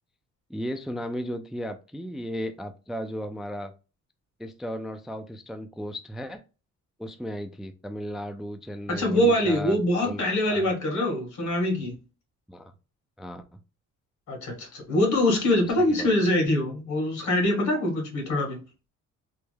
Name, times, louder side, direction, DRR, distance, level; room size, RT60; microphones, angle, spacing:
voice 1, 0.5-3.7 4.4-6.4 7.0-9.8 10.0-10.2 10.5-10.7 12.5-12.7 13.2-13.4 15.6-16.1, equal, ahead, 0.3 m, -35 dB
voice 2, 8.9-12.0 14.3-18.6, left 1 dB, 70° left, 1.8 m, -24 dB
3.4 x 2.1 x 3.3 m
cardioid pair, 90°, 30 cm